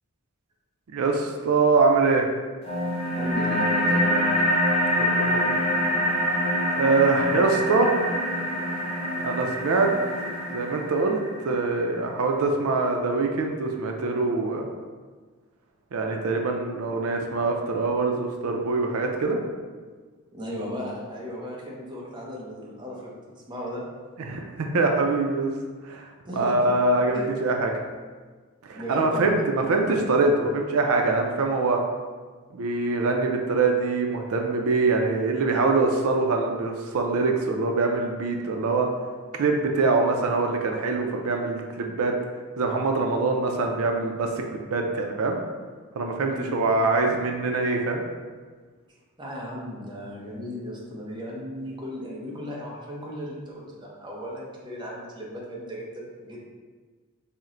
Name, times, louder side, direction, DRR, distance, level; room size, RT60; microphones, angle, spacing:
voice 1, 0.9-2.2 4.9-5.5 6.7-7.9 9.2-9.9 10.5-14.7 15.9-19.4 24.2-25.5 25.8-26.1 26.4-27.7 28.6-31.8 32.5-38.9 39.4-42.1 42.6-45.4 46.0-48.0, right 3 dB, 90° right, 2 dB, 0.4 m, -24 dB
Glowing Pad, 2.6-11.7, equal, 25° left, 0.8 m, -25 dB
voice 2, 3.2-4.3 20.3-23.1 23.5-23.8 26.2-26.7 27.1-27.3 28.8-29.4 46.2-46.6 49.2-56.4, left 1 dB, 20° right, -4 dB, 0.7 m, -35 dB
4.2 x 2.1 x 3.7 m, 1.5 s
head